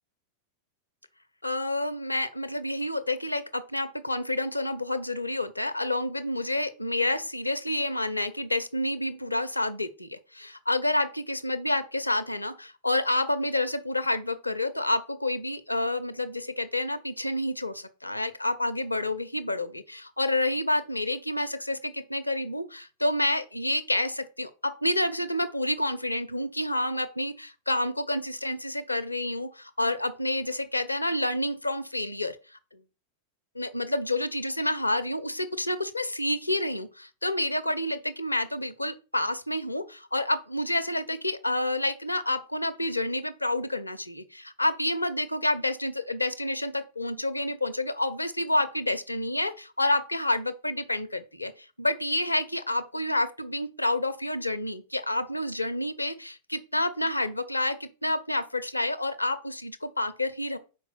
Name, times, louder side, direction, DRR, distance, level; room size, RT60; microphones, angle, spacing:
voice 1, 1.4-32.4 32.7-32.8 33.5-60.6, left 1 dB, 85° left, 0.6 m, -29 dB
5.3 x 4.6 x 5.6 m
figure-of-eight pair, 90°, 0 cm